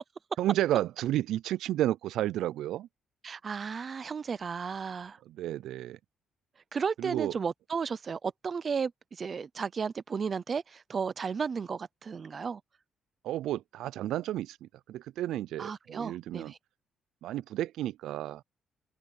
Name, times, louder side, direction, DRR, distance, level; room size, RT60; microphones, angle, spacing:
voice 1, 0.4-2.9 5.3-6.0 7.0-7.3 13.2-16.5 17.2-18.4, right 13 dB, 85° right, 0.4 m, -32 dB
voice 2, 3.2-5.2 6.7-12.6 15.6-16.6, right 6 dB, 30° right, 0.6 m, -34 dB
open air
cardioid pair, 155°, 0 cm